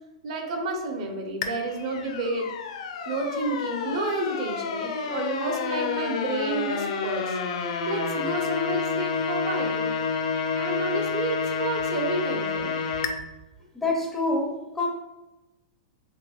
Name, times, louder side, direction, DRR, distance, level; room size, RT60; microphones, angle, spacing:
voice 1, 0.2-2.5 3.1-7.4 7.8-9.9 10.6-12.8, right 2 dB, 55° right, 2 dB, 0.9 m, -30 dB
sound 1, 1.4-13.1, left 5 dB, 65° left, 0.5 m, -29 dB
voice 2, 13.7-14.9, left 2 dB, 5° left, 0 dB, 0.5 m, -26 dB
5.2 x 2.8 x 2.4 m, 1.0 s
supercardioid pair, 155°, 4 cm